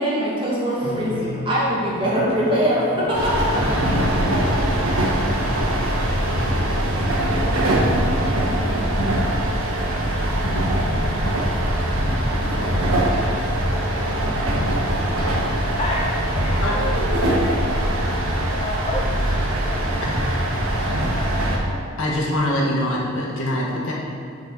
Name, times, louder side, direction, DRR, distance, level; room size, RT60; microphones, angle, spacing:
voice 1, 0.0-4.0, equal, 25° right, -6 dB, 1.8 m, -22 dB
sound 1, 0.8-9.1, left 2 dB, 60° left, 2.1 m, -37 dB
sound 2, 3.1-21.6, right 1 dB, 85° right, 1.5 m, -22 dB
voice 2, 16.3-16.9 17.2-17.6 18.2-20.8 21.1-21.9, left 1 dB, 30° left, -2 dB, 0.6 m, -32 dB
voice 3, 22.0-23.9, left 1 dB, 75° left, -4 dB, 1.7 m, -23 dB
7.0 x 5.5 x 6.1 m, 2.5 s
head